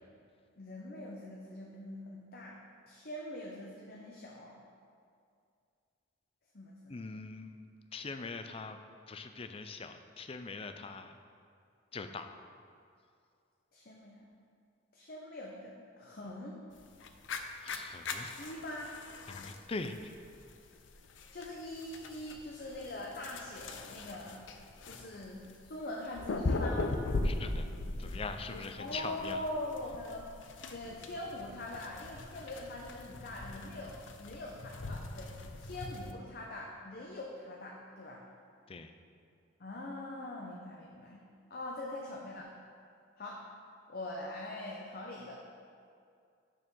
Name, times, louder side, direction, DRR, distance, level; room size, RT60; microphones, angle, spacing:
voice 1, 0.6-2.6 2.9-4.6 6.5-6.9 13.7-14.2 14.9-16.6 18.4-18.9 21.3-24.4 24.8-26.9 28.8-30.3 30.7-35.3 35.6-38.2 39.6-41.2 41.5-42.5 43.2-43.4 43.9-45.4, left 1 dB, 55° left, -2 dB, 0.8 m, -43 dB
voice 2, 6.9-7.6 7.9-8.8 9.1-11.2 11.9-12.3 17.6-18.3 19.3-20.1 27.2-27.7 28.0-29.4 38.7-38.9, left 4 dB, 30° left, 8 dB, 0.4 m, -42 dB
sound 1, 16.8-36.1, left 2 dB, 90° left, 0.6 m, -40 dB
6.8 x 6.2 x 6.1 m, 2.4 s
head